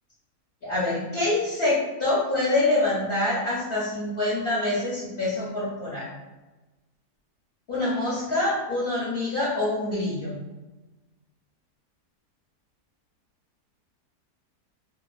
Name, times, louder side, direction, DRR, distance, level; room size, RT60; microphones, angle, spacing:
voice 1, 0.6-6.1 7.7-10.4, left 2 dB, 65° left, -7 dB, 0.5 m, -25 dB
2.8 x 2.3 x 2.4 m, 1.1 s
omnidirectional pair, 1.7 m